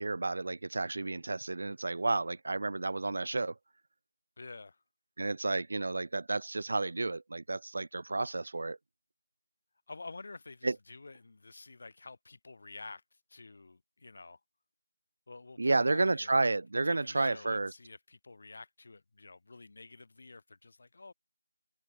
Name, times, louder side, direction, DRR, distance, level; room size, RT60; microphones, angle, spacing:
voice 1, 0.0-3.5 5.2-8.8 10.6-10.8 15.6-17.7, right 3 dB, 50° right, 1.2 m, -31 dB
voice 2, 4.4-4.8 9.9-14.4 15.3-16.6 16.9-21.1, left 3 dB, 45° left, 3.3 m, -50 dB
figure-of-eight pair, 165°, 0 cm